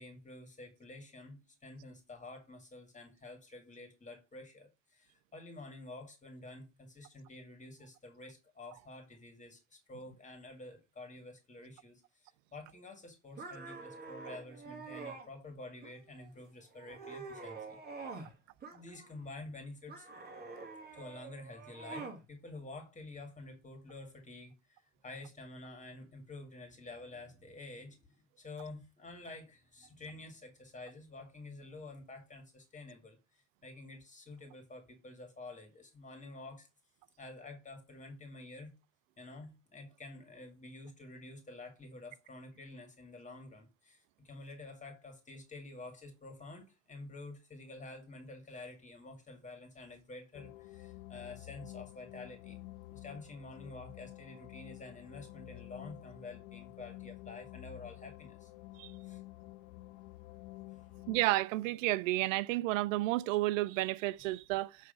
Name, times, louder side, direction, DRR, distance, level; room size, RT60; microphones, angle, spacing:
voice 1, 0.0-17.8 18.7-20.1 20.9-36.7 37.2-38.7 39.2-52.6 52.9-58.5 59.0-59.2 60.7-60.9, left 2 dB, 20° left, 2.0 m, -49 dB
sound 1, 13.4-15.3 15.8-16.3 16.7-18.3 18.6-19.3 19.9-22.2, right 4 dB, 25° right, 1.8 m, -46 dB
sound 2, 50.3-61.2, left 18 dB, 55° left, 0.7 m, -50 dB
voice 2, 61.1-64.8, right 18 dB, 85° right, 0.5 m, -31 dB
7.5 x 3.2 x 5.1 m
supercardioid pair, 100°, 37 cm